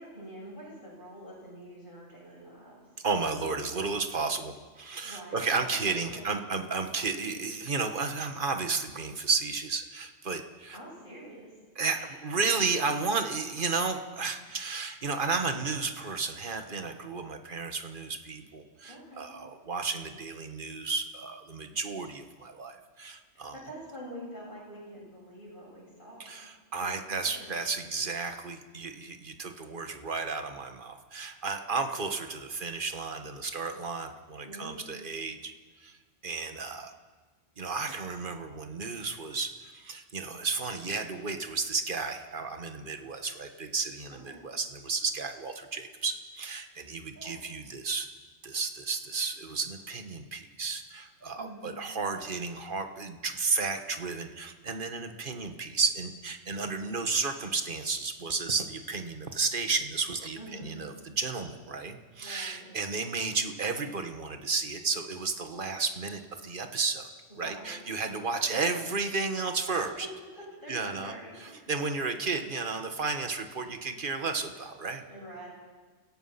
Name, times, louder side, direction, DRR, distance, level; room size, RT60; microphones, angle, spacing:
voice 1, 0.0-2.9 5.0-5.5 5.9-6.5 10.7-11.5 11.8-12.1 18.8-19.3 23.5-26.3 26.7-27.5 34.4-35.0 44.1-44.4 47.1-47.4 51.3-51.7 60.4-60.8 62.2-62.7 67.3-67.8 68.3-68.9 70.6-71.7 75.1-75.5, equal, 45° left, -4 dB, 7.7 m, -46 dB
voice 2, 3.0-10.8 11.8-23.6 26.2-35.5 35.8-36.0 36.2-36.9 37.6-48.1 48.4-67.1 67.4-70.1 70.7-71.1 71.4-75.0, right 4 dB, 45° right, 7 dB, 1.6 m, -33 dB
29.5 x 16.5 x 5.8 m, 1.4 s
omnidirectional pair, 1.2 m